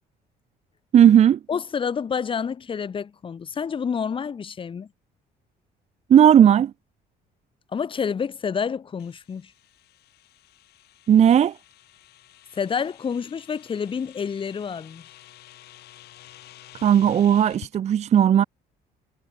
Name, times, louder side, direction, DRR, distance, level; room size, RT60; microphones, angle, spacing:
voice 1, 0.9-1.4 6.1-6.7 11.1-11.6 16.8-18.4, right 9 dB, 40° right, 0.5 m, -15 dB
voice 2, 1.5-4.9 7.7-9.5 12.5-15.1, left 6 dB, 30° left, 1.0 m, -28 dB
sound 1, 9.0-17.8, left 14 dB, 75° left, 4.0 m, -49 dB
cardioid pair, 110°, 17 cm